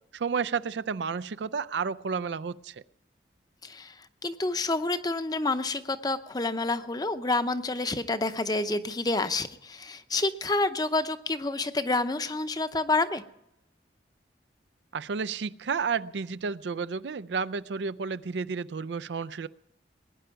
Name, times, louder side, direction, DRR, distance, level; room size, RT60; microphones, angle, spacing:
voice 1, 0.1-2.8 14.9-19.5, right 5 dB, 80° right, 17 dB, 0.5 m, -31 dB
voice 2, 3.6-13.2, left 2 dB, 20° left, 10 dB, 0.7 m, -28 dB
20.0 x 10.0 x 5.8 m, 0.85 s
head